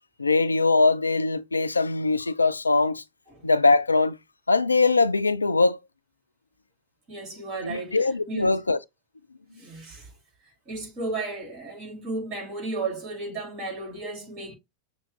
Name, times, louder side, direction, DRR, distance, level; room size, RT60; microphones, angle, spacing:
voice 1, 0.2-3.0 3.4-4.2 4.5-5.8 7.6-8.8, left 3 dB, 80° left, 0.4 m, -22 dB
voice 2, 7.1-8.6 9.5-10.1 10.4-14.6, right 3 dB, 35° right, 2.4 m, -34 dB
6.1 x 2.7 x 3.1 m
figure-of-eight pair, 90°, 0 cm